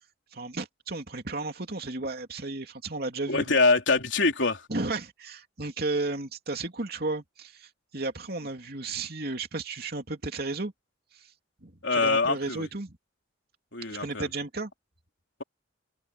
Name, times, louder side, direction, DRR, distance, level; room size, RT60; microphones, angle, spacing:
voice 1, 0.3-3.6 4.7-10.7 11.1-11.3 11.6-13.0 13.9-14.7, right 2 dB, 55° right, 2.9 m, -34 dB
voice 2, 3.3-4.7 11.8-12.7 13.7-14.3, left 3 dB, 80° left, 3.3 m, -24 dB
head